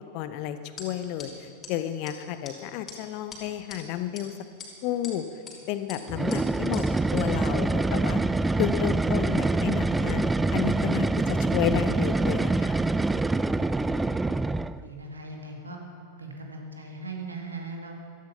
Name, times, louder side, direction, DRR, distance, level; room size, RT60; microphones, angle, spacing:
voice 1, 0.1-4.3 4.8-5.2 5.7-6.8 7.1-8.2 8.6-10.2 10.5-12.8, left 12 dB, 45° left, 11 dB, 0.9 m, -31 dB
sound 1, 0.8-0.9 1.2-1.3 1.6-1.7 2.1-2.2 2.4-2.5 2.9-3.0 3.3-3.8 4.1-4.2 4.6-5.1 5.5-5.6 5.9-6.0 6.3-6.4 6.7-6.8 7.2-7.3, left 5 dB, 25° left, 3.0 m, -41 dB
sound 2, 6.1-14.9, right 2 dB, 10° right, 0.3 m, -25 dB
voice 2, 14.6-15.8 16.2-17.9, right 3 dB, 75° right, 1 dB, 2.4 m, -39 dB
15.5 x 13.5 x 5.7 m, 2.5 s
figure-of-eight pair, 90°, 0 cm